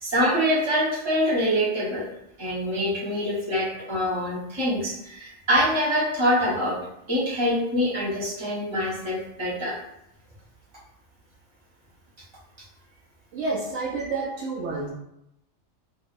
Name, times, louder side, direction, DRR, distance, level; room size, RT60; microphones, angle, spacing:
voice 1, 0.0-2.1 2.4-6.8 7.1-9.8, equal, 25° right, -7 dB, 1.0 m, -25 dB
voice 2, 13.3-14.9, right 3 dB, 70° right, -4 dB, 0.9 m, -29 dB
3.6 x 2.7 x 2.4 m, 0.82 s
omnidirectional pair, 1.3 m